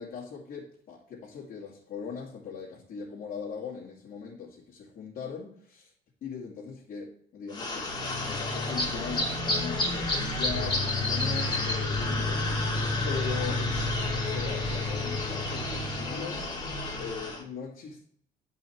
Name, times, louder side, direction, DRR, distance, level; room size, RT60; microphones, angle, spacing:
voice 1, 0.0-5.9 6.2-12.8 13.0-18.0, left 6 dB, 55° left, -6 dB, 2.6 m, -40 dB
sound 1, 7.5-17.4, left 2 dB, 25° left, 3.0 m, -30 dB
12.0 x 5.5 x 4.6 m, 0.62 s
cardioid pair, 110°, 17 cm